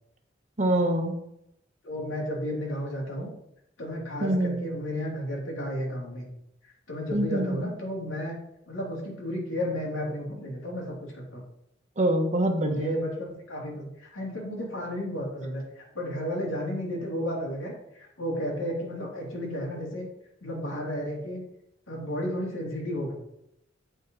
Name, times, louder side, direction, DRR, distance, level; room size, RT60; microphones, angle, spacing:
voice 1, 0.6-1.1 4.2-4.7 7.1-7.7 12.0-12.9, right 1 dB, 40° right, 5 dB, 1.0 m, -25 dB
voice 2, 1.8-3.3 3.8-6.3 6.9-8.4 8.7-11.4 12.6-20.1 20.4-21.4 21.9-23.1, equal, 85° left, -2 dB, 2.8 m, -33 dB
8.2 x 5.7 x 4.0 m, 0.78 s
head